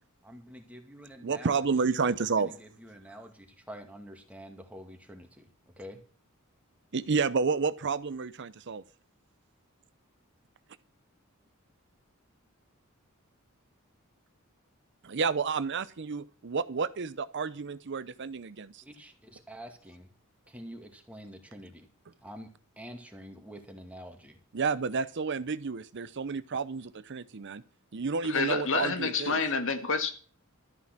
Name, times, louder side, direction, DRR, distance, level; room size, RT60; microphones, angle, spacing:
voice 1, 0.2-5.5 5.8-6.0 18.8-20.1 20.5-21.9 22.2-22.5 22.8-24.4, equal, 5° right, 2.2 m, -47 dB
voice 2, 1.2-2.5 6.9-8.8 15.0-18.8 24.5-27.6 27.9-29.4, right 5 dB, 55° right, 0.7 m, -30 dB
voice 3, 28.2-30.1, left 4 dB, 65° left, 1.9 m, -28 dB
13.0 x 9.4 x 6.0 m
head